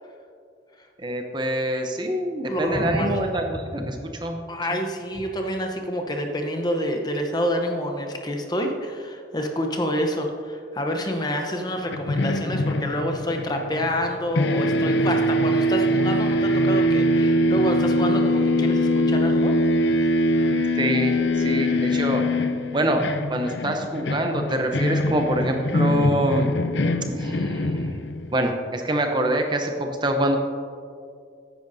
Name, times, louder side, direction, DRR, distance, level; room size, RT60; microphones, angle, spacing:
voice 1, 1.0-4.4 20.7-22.2 22.7-23.0 23.3-26.5 27.1-27.9 28.3-30.4, right 1 dB, 25° right, 4 dB, 0.7 m, -25 dB
voice 2, 2.5-3.2 4.5-19.6 19.9-20.6, equal, 20° left, 3 dB, 0.8 m, -28 dB
sound 1, 11.9-14.1 14.4-28.3, left 1 dB, 70° left, 0.6 m, -23 dB
14.0 x 10.0 x 2.7 m, 2.3 s
head